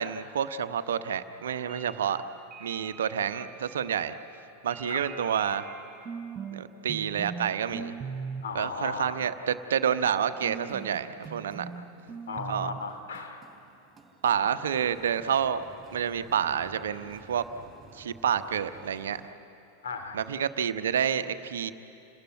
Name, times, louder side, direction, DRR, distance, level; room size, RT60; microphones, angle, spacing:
voice 1, 0.0-2.2 2.6-4.1 4.6-5.7 6.5-7.9 8.5-11.7 12.5-12.7 14.2-15.6 15.9-17.4 17.9-19.2 20.1-21.7, right 8 dB, 65° right, 11 dB, 0.9 m, -29 dB
sound 1, 1.4-6.6 6.9-7.5 7.7-8.4 10.4-19.3, right 6 dB, 15° right, 3.7 m, -43 dB
voice 2, 8.4-9.2 12.3-13.4 19.8-20.2, left 5 dB, 60° left, 6 dB, 2.7 m, -36 dB
28.0 x 19.5 x 9.3 m, 2.8 s
figure-of-eight pair, 90°, 0 cm